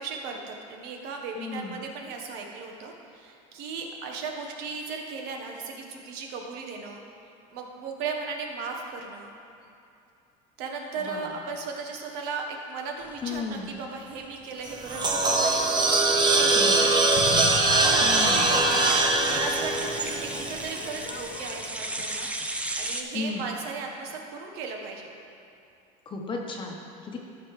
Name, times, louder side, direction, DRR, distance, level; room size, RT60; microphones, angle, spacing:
voice 1, 0.0-7.0 7.5-9.3 10.6-17.3 17.8-18.9 19.3-25.1, right 4 dB, 70° right, 2 dB, 1.3 m, -36 dB
voice 2, 1.4-1.8 11.0-11.3 13.2-13.7 16.6-16.9 18.0-18.6 23.1-23.5 26.1-27.2, left 4 dB, 30° left, 1 dB, 0.9 m, -34 dB
sound 1, 13.0-23.0, right 2 dB, 5° right, 0.5 m, -37 dB
sound 2, 14.6-20.9, right 3 dB, 25° right, 0.9 m, -22 dB
Crowd / Fireworks, 17.1-22.4, left 7 dB, 75° left, 0.7 m, -36 dB
13.5 x 5.6 x 3.2 m, 2.6 s
cardioid pair, 130°, 17 cm